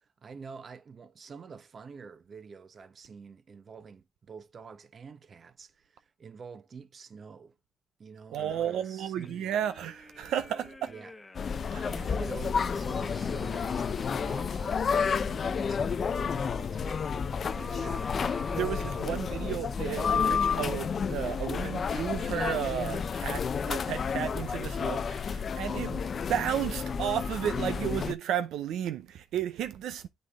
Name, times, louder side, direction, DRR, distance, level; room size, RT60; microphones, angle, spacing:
voice 1, 0.0-7.5 8.0-9.5 10.9-11.1 11.6-17.1 17.4-17.9 18.7-18.8, right 5 dB, 45° right, 0.8 m, -47 dB
voice 2, 8.3-10.9 11.7-11.9 17.5-18.0 18.5-26.0 26.3-30.1, right 10 dB, 80° right, 0.5 m, -33 dB
sound 1, 8.4-11.5 12.0-15.7 17.4-19.8 20.3-20.4, left 2 dB, 15° left, 0.9 m, -47 dB
sound 2, 11.3-28.1, left 6 dB, 45° left, 0.5 m, -31 dB
8.2 x 5.4 x 3.5 m
cardioid pair, 90°, 0 cm